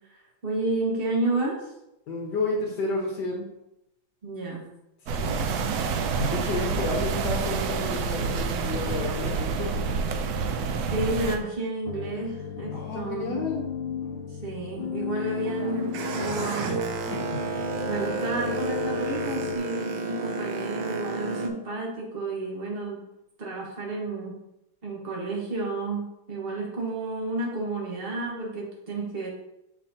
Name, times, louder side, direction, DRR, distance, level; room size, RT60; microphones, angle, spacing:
voice 1, 0.1-1.7 4.2-4.7 10.9-13.4 14.4-16.7 17.8-23.0 23.4-24.4 24.8-29.3, right 2 dB, 30° right, -2 dB, 1.4 m, -31 dB
voice 2, 2.1-3.5 5.2-5.5 6.2-9.8 12.7-13.7 17.1-17.5, left 2 dB, 60° left, 0 dB, 1.5 m, -31 dB
sound 1, 5.1-11.4, right 5 dB, 85° right, 0.8 m, -28 dB
sound 2, 11.8-19.6, left 7 dB, 75° left, 1.2 m, -35 dB
Boat Water vehicle, 15.3-21.5, right 4 dB, 70° right, 1.2 m, -31 dB
7.1 x 5.3 x 2.8 m, 0.87 s
omnidirectional pair, 2.3 m